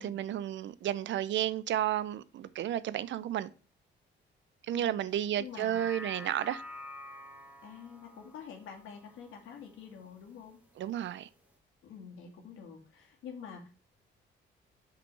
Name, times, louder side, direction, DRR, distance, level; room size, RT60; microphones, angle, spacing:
voice 1, 0.0-3.5 4.7-6.6 10.8-11.3, right 11 dB, 70° right, 0.6 m, -32 dB
voice 2, 4.7-5.8 7.6-10.6 11.8-13.7, left 7 dB, 85° left, 2.1 m, -47 dB
sound 1, 5.4-10.0 10.4-10.5, left 1 dB, 5° right, 1.4 m, -48 dB
6.1 x 5.2 x 4.7 m
cardioid pair, 90°, 20 cm